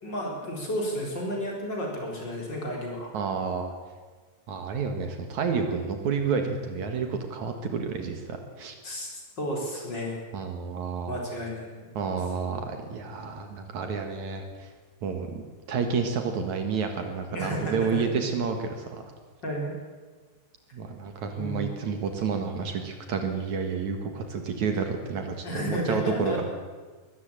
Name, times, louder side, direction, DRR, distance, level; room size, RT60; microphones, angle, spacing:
voice 1, 0.0-3.1 8.8-9.1 9.4-10.2 11.1-11.7 17.3-18.0 19.4-19.7 21.4-21.7 25.4-26.4, equal, 30° left, -1 dB, 4.8 m, -32 dB
voice 2, 3.1-3.7 4.5-8.7 10.3-11.2 11.9-14.7 15.0-15.4 15.7-19.0 20.7-26.4, right 5 dB, 65° right, 5 dB, 2.9 m, -30 dB
22.0 x 13.5 x 8.9 m, 1.4 s
omnidirectional pair, 3.7 m